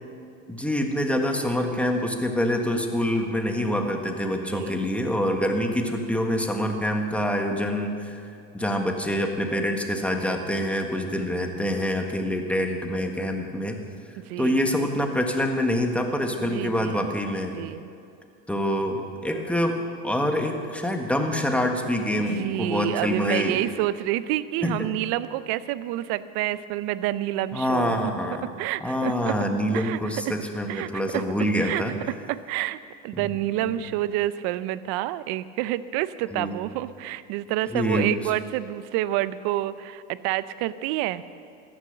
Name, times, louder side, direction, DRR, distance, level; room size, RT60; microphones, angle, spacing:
voice 1, 0.5-8.2 8.5-13.8 14.4-17.6 18.5-19.8 20.0-23.6 24.6-24.9 27.5-28.5 28.8-31.9 33.2-33.3 33.6-33.8 36.3-36.6 37.7-38.1, equal, 5° left, 3 dB, 1.5 m, -26 dB
voice 2, 4.4-4.7 14.2-14.6 16.4-17.0 17.5-17.8 22.3-28.1 28.4-29.4 29.7-30.3 30.7-31.3 31.6-32.8 33.0-41.2, right 14 dB, 60° right, 16 dB, 0.7 m, -28 dB
14.0 x 10.5 x 6.6 m, 2.5 s
supercardioid pair, 100°, 44 cm